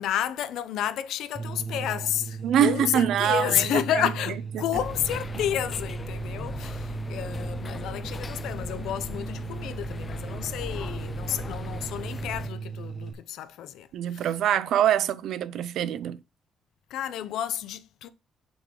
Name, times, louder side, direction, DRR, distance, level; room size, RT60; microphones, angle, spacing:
voice 1, 0.0-14.3 16.9-18.1, left 11 dB, 85° left, 0.5 m, -31 dB
sound 1, 1.4-13.1, right 5 dB, 25° right, 0.8 m, -36 dB
voice 2, 2.4-4.1 4.6-4.7 13.9-16.2, right 10 dB, 70° right, 0.4 m, -24 dB
sound 2, 4.7-12.5, left 4 dB, 25° left, 0.3 m, -38 dB
5.9 x 3.8 x 5.0 m
cardioid pair, 150°, 0 cm